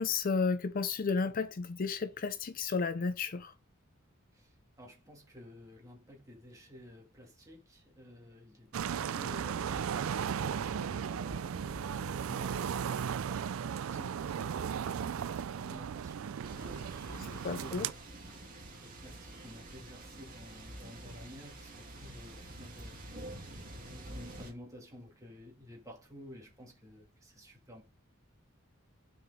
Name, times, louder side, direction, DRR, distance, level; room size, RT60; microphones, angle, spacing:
voice 1, 0.0-3.5 17.4-17.9, left 4 dB, 40° left, 0.4 m, -32 dB
voice 2, 4.3-10.3 10.6-16.4 16.9-17.9 18.8-23.0 23.9-27.8, left 1 dB, 15° right, 2.2 m, -53 dB
sound 1, 8.6-13.5, equal, 25° left, 3.3 m, -51 dB
Yard Sale Ambience, 8.7-17.9, right 7 dB, 80° right, 0.4 m, -36 dB
sound 2, 16.4-24.5, right 1 dB, 40° right, 2.3 m, -47 dB
9.3 x 5.0 x 3.6 m
head